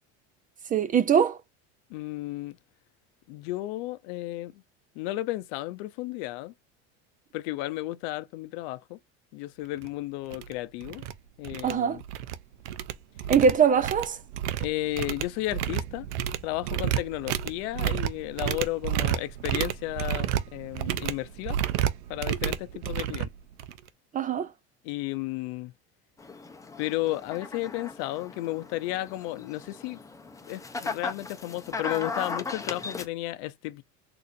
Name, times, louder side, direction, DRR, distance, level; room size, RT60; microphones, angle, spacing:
voice 1, 0.7-1.4 11.6-12.0 13.3-14.2 24.1-24.5, right 7 dB, 25° right, 0.4 m, -22 dB
voice 2, 1.9-2.5 3.3-4.5 5.0-6.5 7.3-9.0 9.3-11.0 11.4-12.0 14.6-16.1 16.4-21.6 22.1-23.3 24.8-25.7 26.8-30.0 30.5-33.8, left 17 dB, 70° left, 0.6 m, -33 dB
sound 1, 9.8-9.9 10.3-10.5 10.8-11.1 11.4-12.4 12.7-23.9, right 11 dB, 90° right, 0.6 m, -30 dB
sound 2, 26.2-33.0, left 4 dB, 10° left, 0.7 m, -37 dB
4.0 x 2.7 x 2.5 m
supercardioid pair, 105°, 34 cm